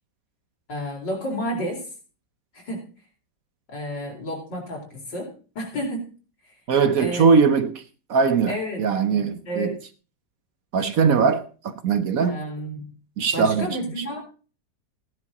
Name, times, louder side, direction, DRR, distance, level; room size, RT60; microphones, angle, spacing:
voice 1, 0.7-1.9 2.5-2.9 3.7-6.1 6.5-6.6 7.0-7.3 8.5-8.8 9.5-9.8 12.2-12.9 13.3-14.2, equal, 75° left, 4.8 m, -31 dB
voice 2, 6.7-7.8 8.1-9.7 10.7-12.4 13.2-13.8, right 5 dB, 60° right, 1.1 m, -21 dB
16.0 x 10.5 x 3.8 m
omnidirectional pair, 1.9 m